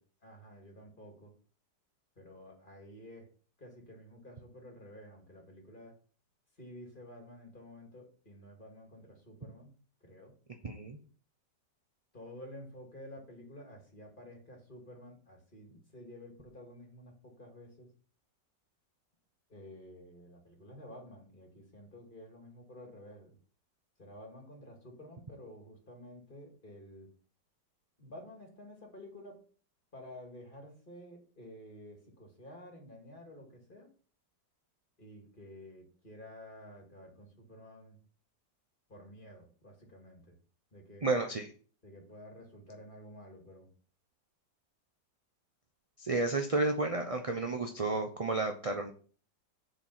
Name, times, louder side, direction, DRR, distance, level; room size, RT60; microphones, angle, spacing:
voice 1, 0.2-1.3 2.2-3.3 3.6-6.0 6.6-9.7 10.0-10.3 12.1-17.9 19.5-23.4 24.0-27.1 28.0-29.4 29.9-33.9 35.0-38.0 38.9-40.3 40.7-41.1 41.8-43.7, left 1 dB, 30° left, 1 dB, 2.5 m, -51 dB
voice 2, 10.6-11.0 41.0-41.5 46.0-48.9, right 3 dB, 35° right, 4 dB, 0.5 m, -31 dB
7.8 x 5.0 x 5.7 m, 0.40 s
omnidirectional pair, 1.9 m